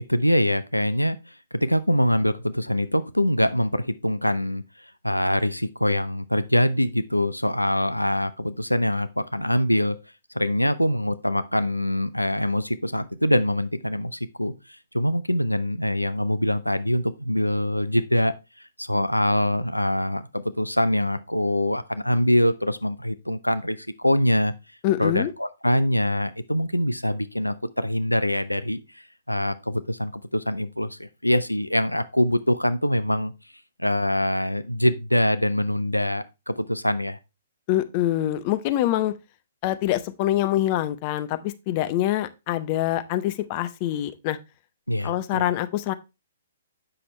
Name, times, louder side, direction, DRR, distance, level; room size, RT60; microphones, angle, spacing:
voice 1, 0.1-1.3 1.6-4.6 5.0-10.0 10.3-14.5 14.9-24.5 25.0-33.3 33.8-37.2 44.9-45.4, left 1 dB, 85° left, 0.5 m, -24 dB
voice 2, 24.8-25.3 37.7-39.1 39.6-44.4 45.0-45.9, left 13 dB, 30° left, 0.6 m, -25 dB
7.7 x 5.9 x 3.1 m
figure-of-eight pair, 120°, 0 cm